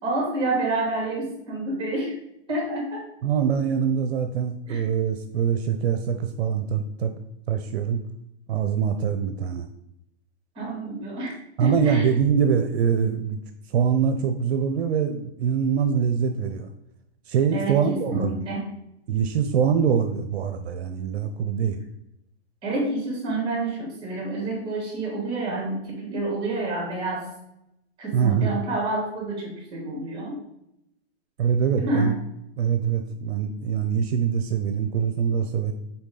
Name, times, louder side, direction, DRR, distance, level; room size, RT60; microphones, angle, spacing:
voice 1, 0.0-2.1 2.5-3.0 4.7-4.9 10.5-12.1 17.5-18.7 22.6-27.3 28.0-30.4 31.8-32.1, right 2 dB, 15° right, -2 dB, 2.5 m, -28 dB
voice 2, 3.2-7.1 7.5-8.0 8.5-9.7 11.6-13.4 13.7-16.7 17.3-18.4 19.1-21.8 28.1-28.5 31.4-32.1 32.6-35.7, right 7 dB, 65° right, 7 dB, 0.6 m, -24 dB
7.0 x 4.2 x 3.8 m, 0.82 s
hypercardioid pair, 155°, 33 cm